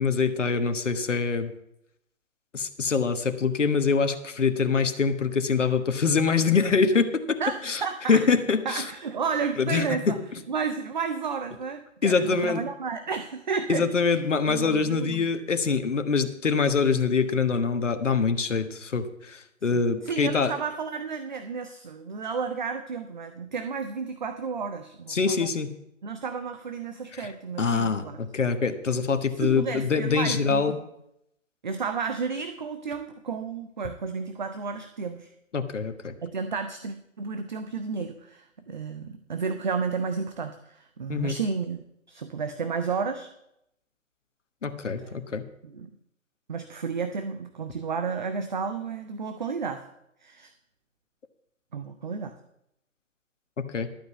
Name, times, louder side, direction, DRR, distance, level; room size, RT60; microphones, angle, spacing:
voice 1, 0.0-1.5 2.5-7.4 7.6-7.8 8.1-8.8 9.6-10.2 12.0-12.6 13.7-20.5 25.1-25.7 27.1-27.3 27.6-30.8 35.5-36.1 41.1-41.3 44.6-45.4 53.6-53.9, left 5 dB, 65° left, 8 dB, 1.3 m, -24 dB
voice 2, 7.4-8.2 8.7-10.2 10.5-14.2 14.5-15.3 19.7-25.5 26.0-28.2 29.4-30.8 31.6-35.3 36.2-41.8 42.1-43.3 45.0-45.2 45.6-45.9 46.5-49.8 50.2-50.5 51.7-52.3, right 5 dB, 35° right, 9 dB, 0.6 m, -32 dB
12.0 x 5.4 x 8.0 m, 0.79 s
figure-of-eight pair, 135°, 40 cm